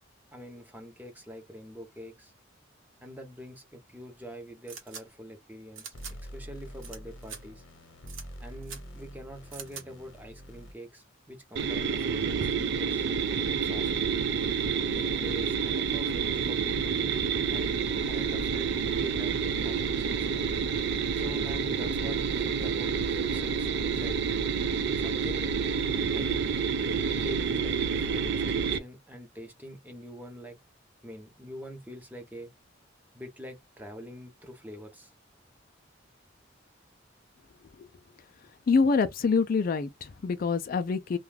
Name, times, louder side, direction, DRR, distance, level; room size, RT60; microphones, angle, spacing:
voice 1, 0.3-2.3 3.0-7.6 8.4-13.1 13.5-13.9 14.9-17.0 17.5-18.7 19.0-20.5 21.1-24.3 25.0-25.5 26.1-26.5 26.8-30.6 31.0-32.5 33.1-35.1, equal, 10° right, 0.7 m, -44 dB
sound 1, 4.7-5.0 5.8-6.1 6.8-7.0 7.2-7.4 8.1-8.2 8.6-8.8 9.5-9.8, right 7 dB, 80° right, 1.0 m, -42 dB
sound 2, 5.9-10.7, equal, 85° left, 0.8 m, -45 dB
sound 3, 11.6-28.8, right 6 dB, 60° right, 0.3 m, -28 dB
voice 2, 38.7-41.2, left 4 dB, 45° left, 0.3 m, -26 dB
2.3 x 2.3 x 3.2 m
head